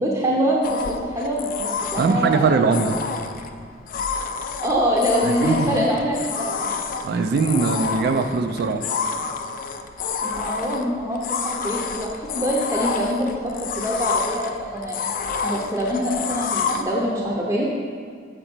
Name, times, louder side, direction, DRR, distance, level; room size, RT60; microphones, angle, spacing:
voice 1, 0.0-2.6 4.4-6.7 10.2-15.1 15.4-17.7, equal, 20° right, -3 dB, 0.6 m, -24 dB
sound 1, 0.6-16.8, left 5 dB, 45° left, 0.4 m, -29 dB
voice 2, 1.9-3.0 5.2-5.9 7.0-8.9, right 4 dB, 60° right, 7 dB, 0.3 m, -21 dB
6.5 x 4.9 x 4.4 m, 2.1 s
head